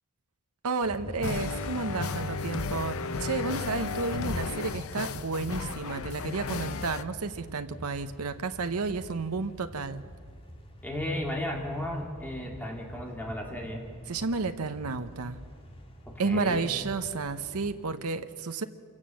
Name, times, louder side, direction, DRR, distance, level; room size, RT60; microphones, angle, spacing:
voice 1, 0.6-10.0 14.1-15.4 16.2-18.6, right 4 dB, 85° right, 9 dB, 0.8 m, -31 dB
sound 1, 0.8-17.9, equal, 25° left, 2.1 m, -46 dB
sound 2, 1.2-7.0, left 4 dB, 70° left, 0.8 m, -34 dB
voice 2, 10.8-13.8 16.1-16.7, left 1 dB, 10° left, 0 dB, 2.5 m, -34 dB
26.5 x 17.5 x 7.6 m, 2.3 s
head